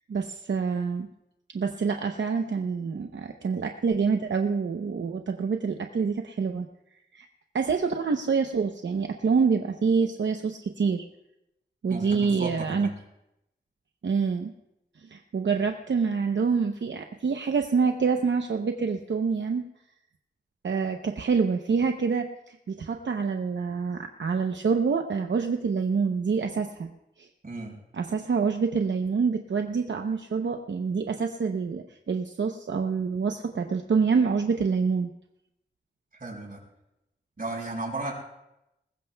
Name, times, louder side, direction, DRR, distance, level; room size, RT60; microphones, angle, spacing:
voice 1, 0.1-1.1 1.5-6.7 7.1-7.3 7.5-11.0 11.8-12.9 14.0-14.5 15.0-19.6 20.6-26.9 27.2-27.3 27.9-35.1, right 5 dB, 80° right, 4 dB, 0.7 m, -26 dB
voice 2, 11.9-12.9 27.4-27.7 36.2-36.6 37.4-38.1, right 2 dB, 50° right, -1 dB, 5.2 m, -34 dB
21.0 x 19.5 x 2.3 m, 0.88 s
wide cardioid pair, 80°, 19 cm